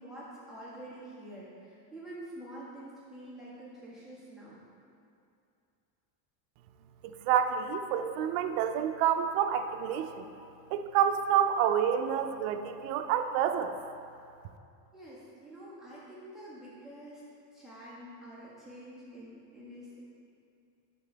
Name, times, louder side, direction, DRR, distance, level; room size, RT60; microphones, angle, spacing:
voice 1, 0.0-4.6 14.9-17.2 17.5-20.0, right 1 dB, ahead, -10 dB, 1.6 m, -47 dB
voice 2, 7.0-10.2 10.7-13.7, right 9 dB, 80° right, 7 dB, 0.7 m, -28 dB
10.5 x 4.3 x 3.4 m, 2.5 s
cardioid pair, 140°, 50 cm